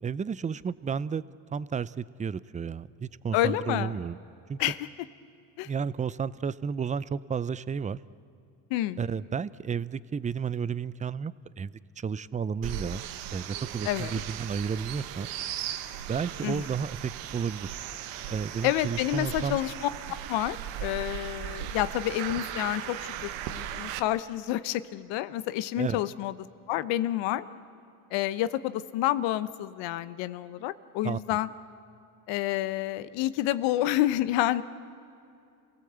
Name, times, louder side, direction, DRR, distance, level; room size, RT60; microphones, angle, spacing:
voice 1, 0.0-1.2 1.5-4.2 4.5-4.6 5.6-8.0 9.0-13.0 13.3-15.3 16.1-17.8 18.3-19.6 25.7-26.0 31.0-31.2, right 6 dB, 20° right, 18 dB, 0.5 m, -32 dB
voice 2, 3.3-4.0 4.6-4.8 5.6-5.7 8.7-9.0 13.8-14.2 16.4-16.6 18.6-19.7 20.3-26.3 26.7-27.4 28.1-31.5 32.3-34.6, left 14 dB, 80° left, 15 dB, 0.9 m, -29 dB
sound 1, 12.6-24.0, right 10 dB, 85° right, 1.1 m, -37 dB
27.5 x 17.0 x 8.0 m, 2.6 s
cardioid pair, 95°, 43 cm